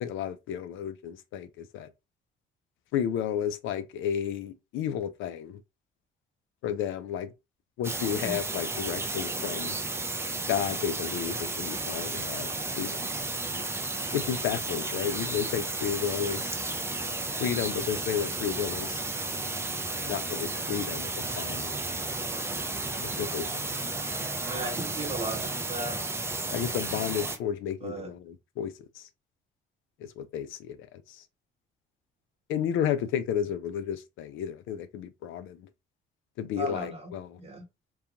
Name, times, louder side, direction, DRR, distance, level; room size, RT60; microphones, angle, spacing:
voice 1, 0.0-1.9 2.9-5.6 6.6-7.3 7.8-9.8 10.5-13.1 14.1-16.6 17.4-19.0 20.0-22.0 23.0-23.7 26.5-29.1 30.0-31.2 32.5-35.7 36.4-37.4, left 9 dB, 85° left, 0.4 m, -32 dB
sound 1, 7.8-27.4, right 2 dB, 15° right, 0.4 m, -33 dB
voice 2, 24.4-26.0 27.8-28.1 36.6-37.1 37.4-37.6, right 2 dB, 30° right, 0.9 m, -36 dB
2.8 x 2.3 x 2.5 m
cardioid pair, 90°, 20 cm